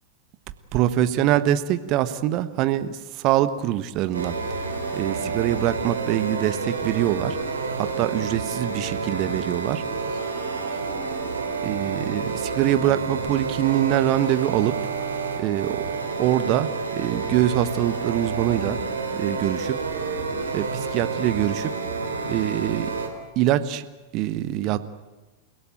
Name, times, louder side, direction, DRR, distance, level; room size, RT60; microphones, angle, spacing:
voice 1, 0.7-4.3 5.0-7.4 7.8-9.8 11.6-14.7 15.4-15.8 16.2-18.8 19.1-19.8 20.5-21.7 22.3-22.9 23.4-23.8 24.1-24.8, right 13 dB, 40° right, 12 dB, 1.4 m, -24 dB
sound 1, 4.1-23.1, right 4 dB, 75° right, 4.6 m, -29 dB
29.5 x 17.5 x 9.0 m, 1.2 s
figure-of-eight pair, 90°, 0 cm